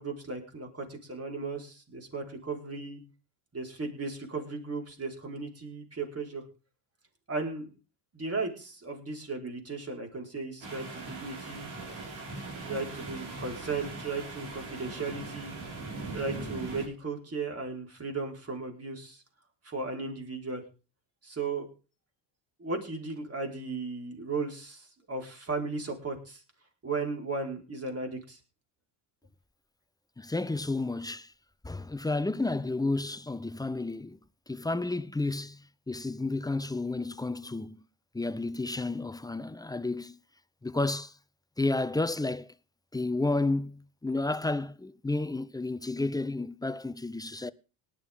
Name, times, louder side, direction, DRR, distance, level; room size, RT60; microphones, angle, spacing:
voice 1, 0.0-3.0 3.5-6.4 7.3-7.7 8.1-11.7 12.7-15.5 16.1-19.2 19.6-20.6 21.2-21.7 22.6-26.4 26.8-28.4, right 3 dB, 30° right, 4.7 m, -36 dB
sound 1, 10.6-16.9, right 3 dB, 80° right, 5.3 m, -40 dB
voice 2, 30.2-31.3 31.6-34.2 34.5-37.8 38.1-40.2 40.6-41.1 41.6-42.5 42.9-47.5, left 2 dB, 10° left, 0.6 m, -31 dB
18.5 x 11.5 x 3.7 m
supercardioid pair, 75°, 45 cm